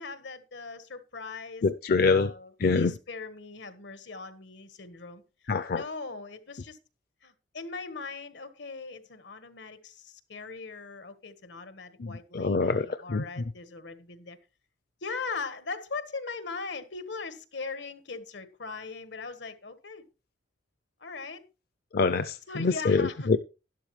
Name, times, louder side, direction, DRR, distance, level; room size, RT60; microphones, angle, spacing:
voice 1, 0.0-1.6 2.0-5.2 5.7-6.8 7.2-14.4 15.0-20.0 21.0-21.4 22.5-23.3, left 4 dB, 85° left, 1.5 m, -40 dB
voice 2, 1.6-2.3 2.6-2.9 5.5-5.8 12.0-13.2 21.9-23.4, left 4 dB, 55° left, 0.5 m, -25 dB
12.0 x 11.5 x 3.2 m
head